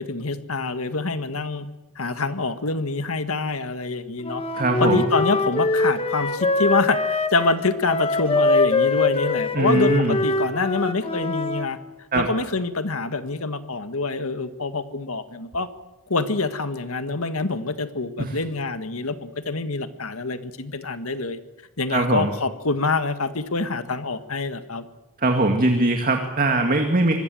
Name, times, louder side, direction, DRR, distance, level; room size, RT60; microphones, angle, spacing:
voice 1, 0.0-1.7 2.0-4.4 4.8-11.8 12.1-15.7 16.1-21.4 21.8-24.9, left 3 dB, 70° left, 10 dB, 1.8 m, -26 dB
Wind instrument woodwind instrument, 4.2-11.7, left 3 dB, 25° left, 1.9 m, -23 dB
voice 2, 4.5-5.0 9.5-10.2 12.1-12.3 18.2-18.4 21.9-22.3 25.2-27.1, right 2 dB, 40° right, 5 dB, 2.1 m, -21 dB
25.5 x 21.5 x 7.8 m, 1.1 s
head